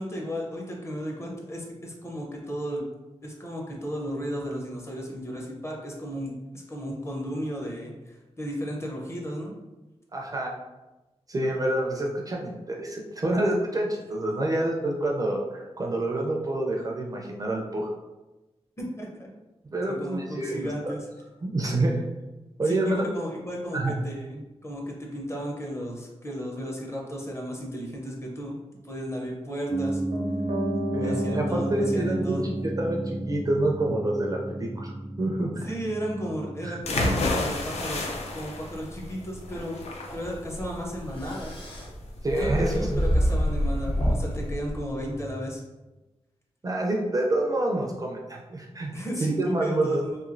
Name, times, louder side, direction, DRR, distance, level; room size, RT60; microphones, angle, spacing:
voice 1, 0.0-2.8 3.2-9.5 18.8-19.3 19.9-21.0 22.7-28.6 28.8-30.0 31.0-32.4 35.7-39.8 40.1-41.5 42.3-45.6 48.9-50.2, equal, 25° left, -1 dB, 0.6 m, -34 dB
voice 2, 10.1-10.5 11.3-17.9 19.7-20.9 21.4-22.0 22.6-23.1 23.7-24.0 30.9-34.9 35.2-35.7 36.6-36.8 42.2-43.0 46.6-50.0, right 1 dB, 30° right, 0 dB, 0.4 m, -27 dB
Piano, 29.7-39.7 40.0-40.1, right 1 dB, 75° right, 0.6 m, -32 dB
sound 1, 36.8-44.5, left 2 dB, 70° left, 0.5 m, -31 dB
sound 2, 40.1-45.3, equal, 50° left, 1.0 m, -28 dB
3.0 x 2.6 x 2.5 m, 1.1 s
wide cardioid pair, 115°, 11 cm